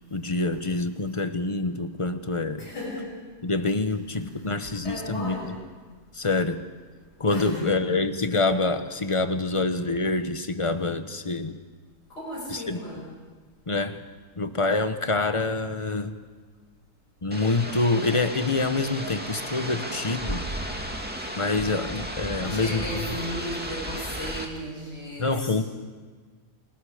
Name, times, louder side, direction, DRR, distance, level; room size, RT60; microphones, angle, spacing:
voice 1, 0.1-2.7 3.4-5.5 6.1-6.7 7.2-11.6 12.5-12.8 13.7-14.1 14.4-16.2 17.2-20.4 21.3-22.8 25.2-25.6, left 3 dB, 20° left, 9 dB, 1.0 m, -26 dB
voice 2, 2.6-3.1 4.8-5.6 7.3-7.7 12.1-13.1 22.0-22.1 22.4-25.6, equal, 80° left, -4 dB, 8.8 m, -35 dB
sound 1, 17.3-24.5, right 1 dB, 5° right, 2.1 m, -34 dB
29.0 x 25.5 x 5.1 m, 1.5 s
omnidirectional pair, 1.7 m